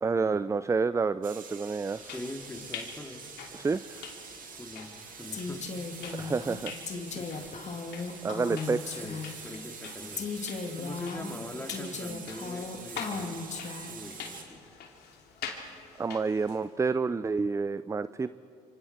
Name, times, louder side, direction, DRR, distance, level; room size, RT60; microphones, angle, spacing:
voice 1, 0.0-2.0 3.5-4.1 6.2-6.7 8.2-9.0 16.0-18.3, right 4 dB, 15° right, 15 dB, 0.5 m, -29 dB
sound 1, 1.2-14.4, right 6 dB, 50° right, 2.6 m, -46 dB
sound 2, 1.8-16.7, left 6 dB, 65° left, 2.9 m, -46 dB
voice 2, 2.0-3.3 4.5-5.7 7.0-7.5 8.9-13.5 13.9-14.9, left 1 dB, 10° left, 4 dB, 2.6 m, -43 dB
Female speech woman speaking, 5.3-9.6 10.2-14.1, left 4 dB, 40° left, 2.4 m, -37 dB
26.5 x 24.5 x 4.4 m, 2.7 s
hypercardioid pair, 65°, 18 cm